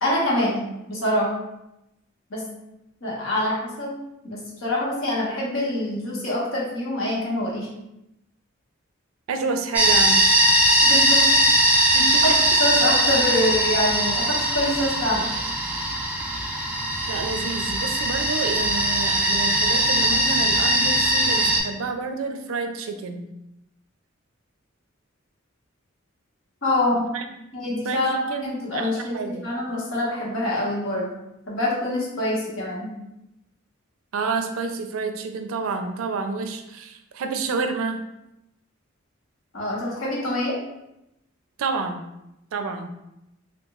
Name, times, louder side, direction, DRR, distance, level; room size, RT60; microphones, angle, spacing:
voice 1, 0.0-0.6 0.9-1.3 2.3-2.4 3.0-3.9 4.2-7.7 10.8-11.3 12.2-12.3 12.6-15.4 26.6-27.1 27.5-31.1 31.5-32.9 39.5-40.6, left 1 dB, 70° left, -5 dB, 1.1 m, -25 dB
voice 2, 9.3-10.3 11.9-12.4 17.1-23.3 27.1-27.3 27.8-29.5 34.1-38.0 41.6-42.0 42.5-42.9, right 4 dB, 90° right, 6 dB, 0.4 m, -29 dB
sound 1, 9.7-21.6, right 1 dB, 5° right, 0.4 m, -20 dB
2.9 x 2.3 x 3.7 m, 0.88 s
head